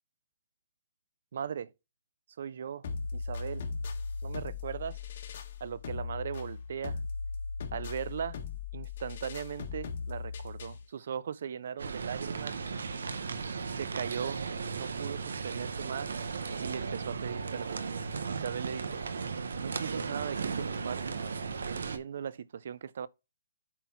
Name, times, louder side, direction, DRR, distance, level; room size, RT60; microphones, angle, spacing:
voice 1, 1.3-1.7 2.4-2.8 3.1-3.6 4.2-5.0 5.6-7.0 7.7-8.4 8.7-12.6 13.7-14.4 14.7-16.1 16.6-17.8 18.3-19.0 19.6-23.1, right 7 dB, 45° right, 0.4 m, -38 dB
sound 1, 2.8-10.8, left 5 dB, 40° left, 1.4 m, -38 dB
sound 2, 11.8-22.0, right 5 dB, 80° right, 1.0 m, -36 dB
8.0 x 3.9 x 4.4 m
hypercardioid pair, 175°, 0 cm